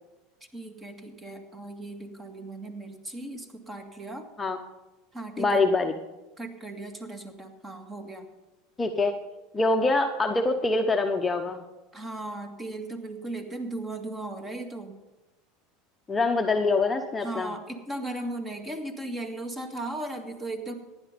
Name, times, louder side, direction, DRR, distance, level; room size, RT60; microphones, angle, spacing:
voice 1, 0.5-4.3 5.1-5.6 6.4-8.3 11.9-15.0 17.2-20.7, right 2 dB, 15° right, 6 dB, 2.0 m, -37 dB
voice 2, 5.4-5.9 8.8-9.1 9.5-11.6 16.1-17.5, left 3 dB, 15° left, 4 dB, 1.0 m, -24 dB
15.5 x 10.5 x 5.3 m, 1.1 s
supercardioid pair, 110°, 0 cm